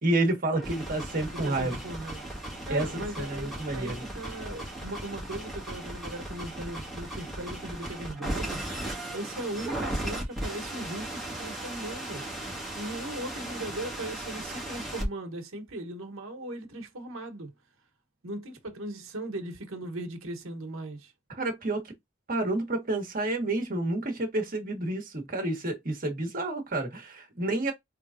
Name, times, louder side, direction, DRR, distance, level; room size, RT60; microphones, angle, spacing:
voice 1, 0.0-1.7 2.7-4.0 21.3-21.9 22.3-27.7, right 2 dB, 45° right, 1.3 m, -29 dB
sound 1, 0.5-15.1, right 1 dB, ahead, 1.7 m, -37 dB
voice 2, 1.3-2.2 2.6-8.6 9.1-12.3 12.7-17.5 18.2-21.1, right 1 dB, 80° right, 1.1 m, -38 dB
3.9 x 3.2 x 2.5 m
head